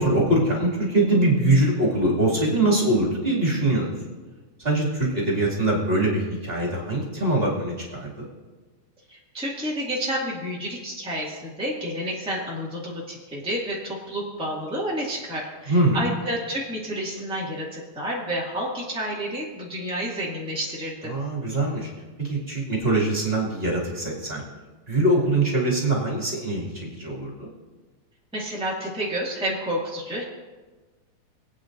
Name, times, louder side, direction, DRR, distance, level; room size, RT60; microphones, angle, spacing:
voice 1, 0.0-3.9 4.6-8.3 15.7-16.1 21.0-21.9 22.2-24.4 24.9-27.5, right 1 dB, 20° right, -5 dB, 2.1 m, -23 dB
voice 2, 9.1-21.1 28.3-30.2, equal, 5° right, -6 dB, 0.7 m, -30 dB
27.0 x 9.1 x 2.6 m, 1.3 s
omnidirectional pair, 4.1 m